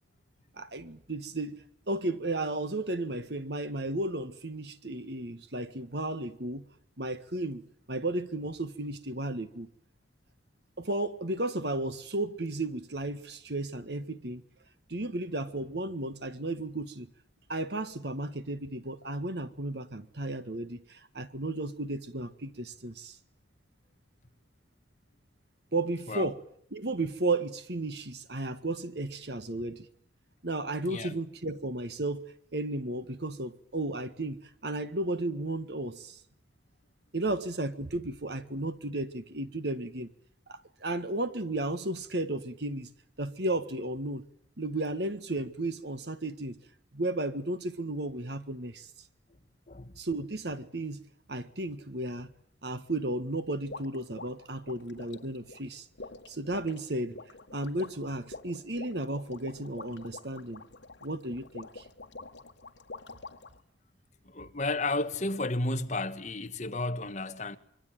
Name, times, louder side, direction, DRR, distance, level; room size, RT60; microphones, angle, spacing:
voice 1, 0.5-1.6 1.9-6.6 7.0-9.7 10.8-14.4 14.9-17.1 17.5-23.2 25.7-26.4 26.7-29.9 30.4-32.2 32.5-36.2 37.1-40.1 40.5-42.9 43.2-44.2 44.6-46.6 46.9-48.9 50.0-51.0 51.3-52.3 52.6-55.9 56.3-57.2 57.5-60.6 61.0-61.8, right 2 dB, 60° right, 1.6 m, -34 dB
voice 2, 30.9-31.2 49.7-49.9 64.2-67.6, left 2 dB, 40° left, 1.5 m, -32 dB
sound 1, 53.7-63.6, left 3 dB, 70° left, 2.0 m, -46 dB
25.5 x 23.5 x 9.2 m
head